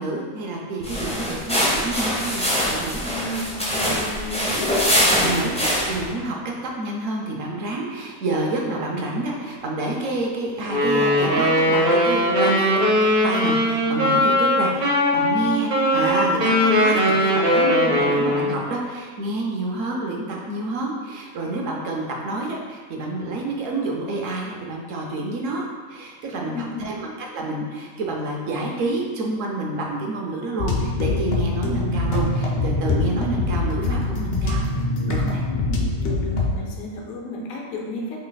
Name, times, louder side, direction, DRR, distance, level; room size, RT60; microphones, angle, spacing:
voice 1, 0.0-3.1 5.2-34.7 35.1-35.4, right 2 dB, 70° right, -1 dB, 0.9 m, -28 dB
sound 1, 0.8-6.1, equal, 10° left, 0.4 m, -23 dB
voice 2, 3.1-4.7 26.4-27.0 35.5-38.2, left 1 dB, 80° left, -1 dB, 1.2 m, -33 dB
Wind instrument woodwind instrument, 10.6-18.6, left 1 dB, 45° right, 0.6 m, -20 dB
sound 2, 30.6-36.5, left 2 dB, 60° left, 0.6 m, -23 dB
3.2 x 2.7 x 3.9 m, 1.5 s
omnidirectional pair, 1.5 m